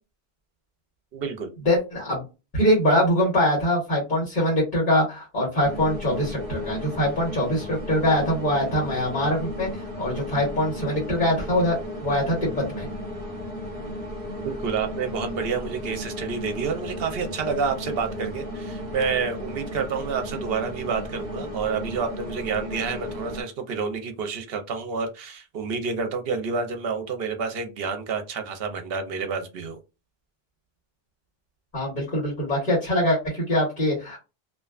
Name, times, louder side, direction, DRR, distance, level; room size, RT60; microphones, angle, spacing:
voice 1, 1.1-1.5 14.4-29.8, right 5 dB, 70° right, 0.8 m, -29 dB
voice 2, 1.6-2.2 2.5-12.9 31.7-34.2, left 1 dB, 50° left, 1.2 m, -23 dB
sound 1, 5.6-23.4, equal, 35° right, 0.9 m, -34 dB
2.5 x 2.2 x 2.3 m
omnidirectional pair, 1.0 m